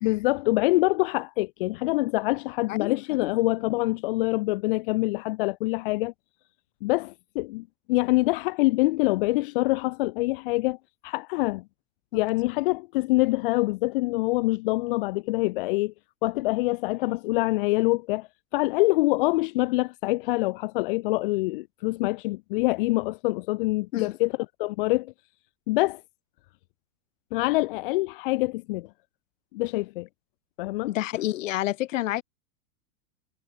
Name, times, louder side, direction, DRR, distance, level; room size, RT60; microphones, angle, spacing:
voice 1, 0.0-6.1 6.8-10.8 11.0-11.6 12.1-15.9 16.2-24.3 24.6-25.1 25.7-26.0 27.3-28.9 29.5-30.1 30.6-30.9, left 21 dB, 40° left, 1.1 m, -25 dB
voice 2, 2.7-3.3 12.1-12.2 23.9-24.1 30.9-32.2, left 15 dB, 60° left, 5.2 m, -29 dB
supercardioid pair, 170°, 43 cm